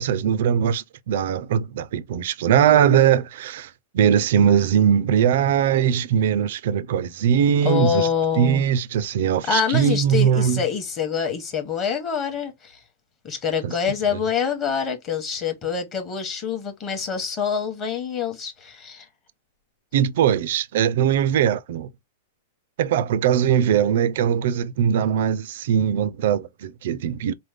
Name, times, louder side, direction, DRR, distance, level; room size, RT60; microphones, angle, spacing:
voice 1, 0.0-8.1 8.4-10.6 13.6-13.7 19.9-21.9 22.8-27.3, right 8 dB, 50° right, 0.3 m, -20 dB
voice 2, 7.6-8.6 9.5-12.8 13.2-19.1, left 7 dB, 20° left, 0.9 m, -25 dB
5.0 x 2.1 x 3.3 m
supercardioid pair, 175°, 0 cm